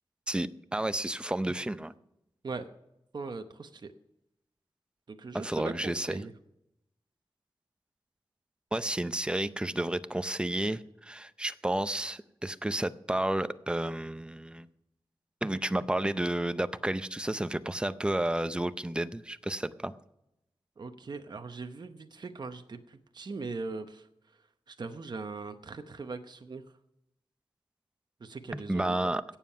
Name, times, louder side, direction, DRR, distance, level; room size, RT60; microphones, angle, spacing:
voice 1, 0.3-1.9 5.3-6.3 8.7-14.7 15.4-19.9 28.5-29.2, right 1 dB, 10° right, 13 dB, 0.5 m, -31 dB
voice 2, 3.1-3.9 5.1-6.3 20.8-24.1 24.7-26.6 28.2-29.0, right 4 dB, 50° right, 7 dB, 0.8 m, -40 dB
17.0 x 7.3 x 5.6 m, 0.84 s
wide cardioid pair, 115°, 9 cm